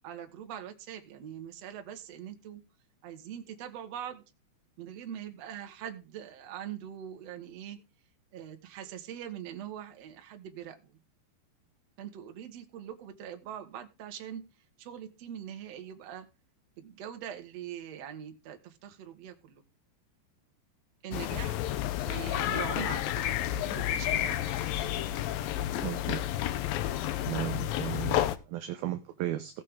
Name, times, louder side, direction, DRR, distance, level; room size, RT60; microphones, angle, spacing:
voice 1, 0.0-2.6 3.0-4.2 4.8-7.8 8.3-11.0 12.0-14.4 14.8-16.3 16.8-19.6 21.0-24.6, right 9 dB, 60° right, 5 dB, 1.8 m, -42 dB
sound 1, 21.1-28.4, left 12 dB, 90° left, 2.0 m, -31 dB
voice 2, 25.8-26.2 27.3-29.6, right 14 dB, 80° right, 9 dB, 2.2 m, -35 dB
17.5 x 6.5 x 3.7 m, 0.28 s
omnidirectional pair, 5.2 m